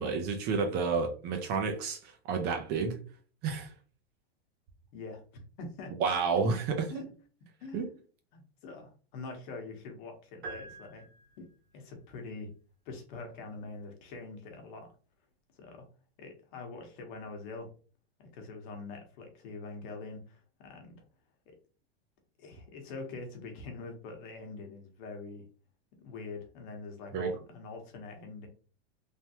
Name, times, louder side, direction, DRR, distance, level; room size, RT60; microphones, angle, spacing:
voice 1, 0.0-3.0 3.4-3.7 6.0-7.0 7.7-7.9 27.1-27.3, right 5 dB, 30° right, 0.5 m, -30 dB
voice 2, 5.6-5.9 6.4-6.5 6.9-7.0 7.6-8.0 8.3-11.0 11.4-11.5 11.7-12.5 12.8-14.9 15.5-15.9 16.2-17.7 18.2-21.0 22.4-25.4 26.0-28.5, left 3 dB, 50° left, 1.1 m, -44 dB
sound 1, 10.4-11.7, right 4 dB, 85° right, 1.4 m, -46 dB
3.2 x 2.1 x 2.8 m
hypercardioid pair, 135°, 31 cm